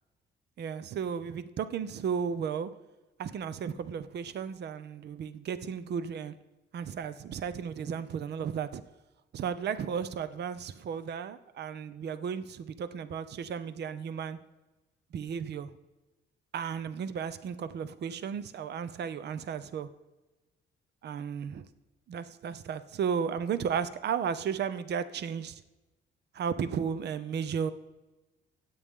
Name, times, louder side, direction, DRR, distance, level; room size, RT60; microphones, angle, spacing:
voice 1, 0.6-2.7 3.2-6.4 6.7-8.8 9.3-14.4 15.1-15.7 16.5-19.9 21.0-21.7 22.1-25.6 26.3-27.7, right 7 dB, 60° right, 13 dB, 0.7 m, -34 dB
25.0 x 8.5 x 3.7 m, 1.1 s
cardioid pair, 90°, 20 cm